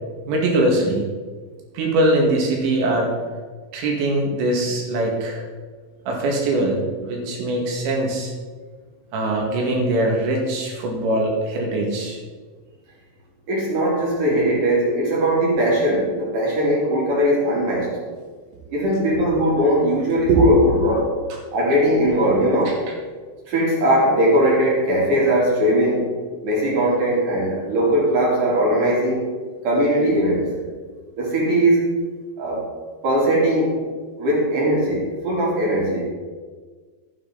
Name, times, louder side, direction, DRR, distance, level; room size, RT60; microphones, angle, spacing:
voice 1, 0.3-1.1 1.8-3.1 3.7-5.4 6.1-8.3 9.1-12.2 20.3-20.6, right 1 dB, 70° right, 0 dB, 4.1 m, -21 dB
voice 2, 13.5-17.9 18.7-21.2 21.5-22.8 23.5-26.1 26.4-29.2 29.6-30.5 31.2-31.9 32.4-32.6 33.0-33.8 34.2-36.0, right 1 dB, 50° right, -5 dB, 4.1 m, -19 dB
12.5 x 9.8 x 4.0 m, 1.5 s
omnidirectional pair, 5.5 m